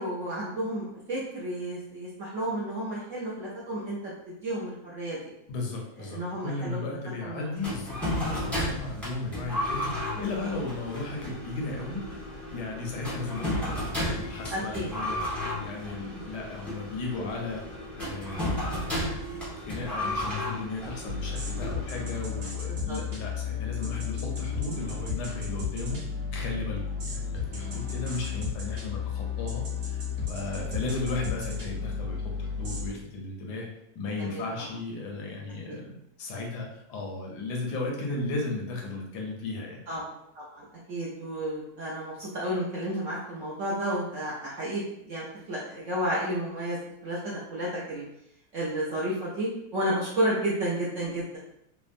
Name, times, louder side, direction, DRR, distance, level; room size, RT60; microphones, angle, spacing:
voice 1, 0.0-4.1 4.4-5.2 6.1-7.5 10.2-10.6 14.5-14.9 16.1-16.3 22.7-23.0 34.2-34.4 39.9-40.0 40.3-48.0 48.5-51.4, right 1 dB, 70° right, -6 dB, 0.7 m, -32 dB
voice 2, 5.5-12.0 12.5-15.2 15.6-17.6 17.9-18.6 19.0-26.0 26.3-33.7 33.9-39.8, left 3 dB, 75° left, 0 dB, 1.2 m, -35 dB
sound 1, 7.6-22.3, left 1 dB, ahead, 0.6 m, -33 dB
sound 2, 21.1-32.9, left 6 dB, 55° right, 1.2 m, -33 dB
3.4 x 2.0 x 2.5 m, 0.78 s
omnidirectional pair, 1.8 m